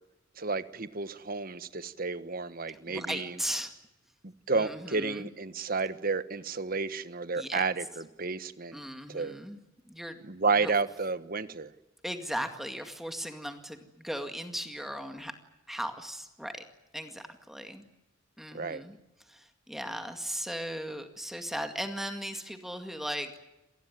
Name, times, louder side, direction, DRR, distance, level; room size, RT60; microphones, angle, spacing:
voice 1, 0.4-3.4 4.2-8.8 9.1-9.4 10.2-11.7 18.5-18.8, right 4 dB, 45° right, 13 dB, 1.3 m, -31 dB
voice 2, 2.7-3.7 4.6-5.3 7.4-7.6 8.7-9.6 9.9-10.2 10.6-10.7 12.0-15.3 15.7-16.6 16.9-17.8 18.4-19.0 19.3-23.4, equal, ahead, 6 dB, 2.1 m, -37 dB
26.5 x 19.5 x 9.4 m, 0.96 s
head